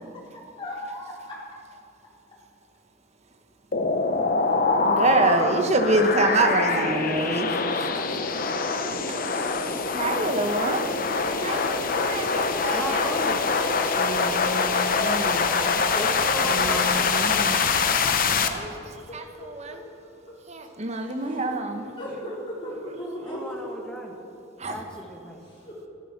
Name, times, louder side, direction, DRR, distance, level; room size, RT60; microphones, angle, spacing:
voice 1, 0.6-1.4 6.6-7.1 7.9-8.4 8.8-8.9 9.4-10.0 10.8-12.6 14.9-15.6 17.6-18.3 19.4-19.5 21.0-21.5 22.0-23.6 25.5-25.8, left 1 dB, 25° left, -6 dB, 4.3 m, -38 dB
sound 1, 3.7-18.5, left 4 dB, 45° left, 0.8 m, -24 dB
voice 2, 4.8-7.5 9.9-10.9 11.4-11.6 12.0-13.0 14.0-15.4 15.8-15.9 16.5-17.6 18.4-19.2 19.6-19.7 20.5-21.8 24.6-24.7, right 2 dB, 35° right, 6 dB, 1.1 m, -26 dB
voice 3, 9.1-10.2 10.6-11.2 11.5-11.6 12.7-13.4 13.8-14.1 15.9-16.8 21.5-21.6 23.2-24.1 24.7-25.4, equal, 5° left, 0 dB, 1.7 m, -36 dB
13.0 x 12.5 x 6.0 m, 2.5 s
head